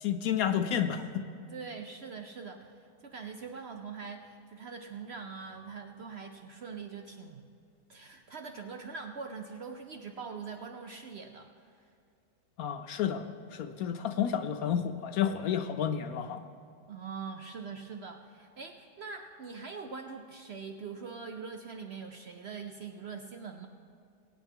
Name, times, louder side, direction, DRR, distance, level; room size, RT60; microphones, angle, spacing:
voice 1, 0.0-1.2 12.6-13.3 13.5-16.4, left 9 dB, 70° left, 8 dB, 0.9 m, -30 dB
voice 2, 1.5-7.4 7.9-11.8 16.9-23.7, right 5 dB, 75° right, 5 dB, 0.6 m, -43 dB
22.5 x 8.7 x 3.6 m, 2.4 s
omnidirectional pair, 1.8 m